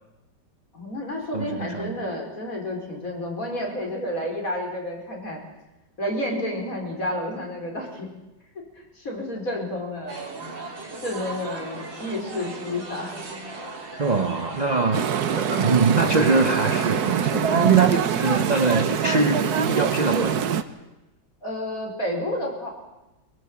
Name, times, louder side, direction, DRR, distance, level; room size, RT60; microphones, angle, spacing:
voice 1, 0.7-5.4 6.0-8.1 8.5-8.6 8.9-10.2 11.0-13.1 21.4-22.7, left 1 dB, 45° left, 1 dB, 5.1 m, -30 dB
voice 2, 1.3-2.1 13.9-20.5, right 4 dB, 40° right, 8 dB, 0.6 m, -23 dB
sound 1, 10.1-17.4, right 3 dB, 90° right, 4.0 m, -37 dB
sound 2, 14.9-20.6, right 8 dB, 60° right, 1.5 m, -24 dB
22.5 x 21.5 x 7.5 m, 1.0 s
omnidirectional pair, 2.0 m